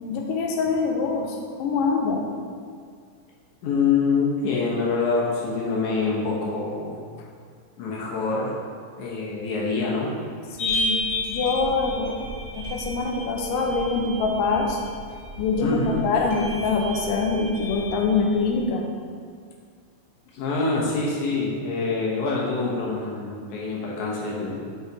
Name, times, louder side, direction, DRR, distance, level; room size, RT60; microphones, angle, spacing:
voice 1, 0.1-2.2 10.6-11.0 11.3-12.2 12.6-14.8 15.4-18.8, left 4 dB, 90° left, 1 dB, 2.4 m, -24 dB
voice 2, 3.6-7.1 7.8-8.5 9.0-10.1 15.6-16.1 20.3-24.6, left 4 dB, 70° left, -4 dB, 2.3 m, -25 dB
sound 1, 10.6-18.6, left 2 dB, 40° left, 1.9 m, -32 dB
6.4 x 5.6 x 4.7 m, 2.1 s
omnidirectional pair, 3.8 m